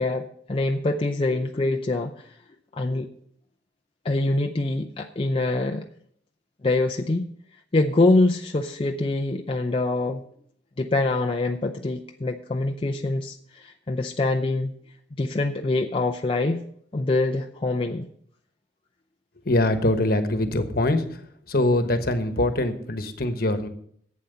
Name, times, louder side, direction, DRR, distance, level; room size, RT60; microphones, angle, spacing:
voice 1, 0.0-2.3 2.7-3.1 4.0-5.8 6.6-7.2 7.7-10.2 10.8-14.7 15.2-16.6 16.9-18.1, left 2 dB, 30° left, 4 dB, 0.5 m, -24 dB
voice 2, 19.5-21.0 21.5-23.7, left 1 dB, 55° left, 8 dB, 1.2 m, -23 dB
11.5 x 8.5 x 5.5 m, 0.65 s
head